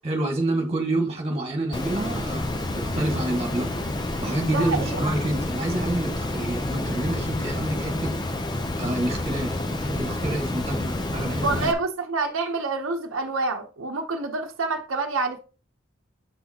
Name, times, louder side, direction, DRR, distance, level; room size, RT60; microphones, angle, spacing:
voice 1, 0.0-3.7 4.2-8.1 8.8-11.7, right 1 dB, 30° right, 1.7 m, -28 dB
Water, 1.7-11.7, left 1 dB, 20° left, 0.5 m, -29 dB
voice 2, 4.5-5.0 11.4-15.4, right 3 dB, 80° right, 0.8 m, -27 dB
7.9 x 5.8 x 2.8 m
head